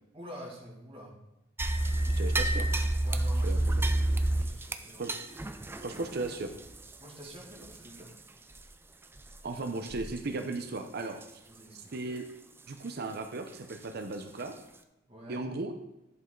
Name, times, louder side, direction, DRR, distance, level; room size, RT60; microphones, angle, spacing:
voice 1, 0.1-1.1 3.0-3.9 4.3-5.0 7.0-8.1 9.5-9.7 11.5-11.9 15.1-15.4, equal, 30° right, -3 dB, 2.1 m, -47 dB
sound 1, 1.6-8.2 8.5-8.6 9.2-9.4 9.9-10.2 10.5-10.6 11.2-11.3 13.7-13.8 14.4-14.5, right 1 dB, 10° right, 0.4 m, -30 dB
voice 2, 2.2-2.7 3.4-3.8 5.0-5.1 5.8-6.5 9.4-11.4 11.9-12.3 12.7-14.5 15.3-15.8, right 2 dB, 55° right, 6 dB, 0.7 m, -36 dB
11.0 x 5.5 x 3.9 m, 0.91 s
head